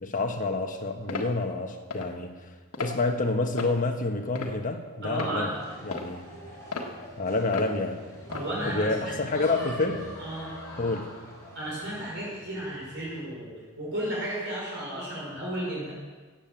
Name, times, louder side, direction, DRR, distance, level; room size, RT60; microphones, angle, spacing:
voice 1, 0.0-2.3 2.8-5.5 5.8-6.2 7.2-8.0 8.6-10.1 10.8-11.1, left 3 dB, 35° left, 4 dB, 1.3 m, -28 dB
sound 1, 1.1-1.3 1.9-2.1 2.7-3.0 3.6-3.8 4.4-4.7 5.2-5.3 5.9-6.1 6.7-6.9 7.5-7.7 8.3-8.5, left 3 dB, 75° left, 1.6 m, -34 dB
voice 2, 5.0-5.5 8.3-9.4 10.2-10.6 11.5-15.9, right 1 dB, 55° right, -5 dB, 5.3 m, -33 dB
sound 2, 5.3-13.2, equal, 15° left, 5.1 m, -44 dB
13.5 x 8.7 x 7.5 m, 1.4 s
head